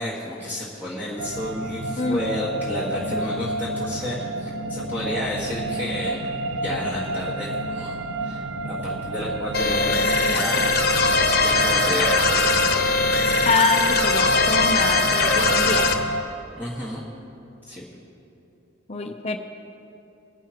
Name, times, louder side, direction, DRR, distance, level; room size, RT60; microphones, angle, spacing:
voice 1, 0.0-6.2 6.5-10.7 11.3-12.4 16.6-17.0 17.7-17.8, left 1 dB, 10° right, -8 dB, 1.6 m, -31 dB
sound 1, 1.2-16.2, right 2 dB, 70° right, 0.5 m, -30 dB
voice 2, 2.0-2.4 13.5-15.9 18.9-19.4, left 3 dB, 30° left, 5 dB, 0.6 m, -25 dB
sound 2, 9.5-15.9, left 3 dB, 50° left, 1.0 m, -20 dB
22.0 x 10.5 x 3.0 m, 2.9 s
head